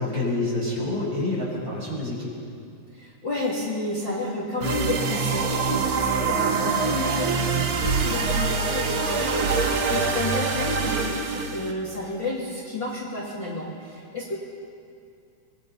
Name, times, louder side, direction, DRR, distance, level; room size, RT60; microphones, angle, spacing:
voice 1, 0.0-2.3, left 2 dB, 25° right, -6 dB, 7.0 m, -27 dB
voice 2, 2.9-14.3, left 2 dB, 35° left, -5 dB, 3.2 m, -31 dB
sound 1, 4.6-11.7, right 4 dB, 60° right, 2.9 m, -24 dB
26.0 x 21.5 x 5.7 m, 2.4 s
omnidirectional pair, 3.6 m